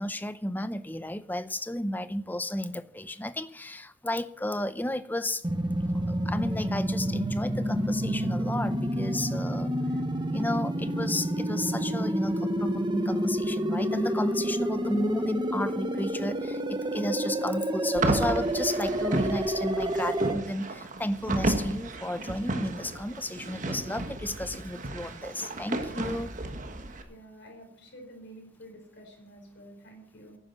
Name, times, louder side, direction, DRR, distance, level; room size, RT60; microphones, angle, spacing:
voice 1, 0.0-5.4 5.8-9.7 10.3-26.3, left 1 dB, 10° left, 0.6 m, -33 dB
sound 1, 5.4-20.3, equal, 20° right, 1.1 m, -29 dB
Falling Loops, 18.0-27.0, right 2 dB, 40° right, 1.4 m, -33 dB
voice 2, 27.1-30.4, equal, 60° left, 4.7 m, -49 dB
11.5 x 9.8 x 8.1 m
head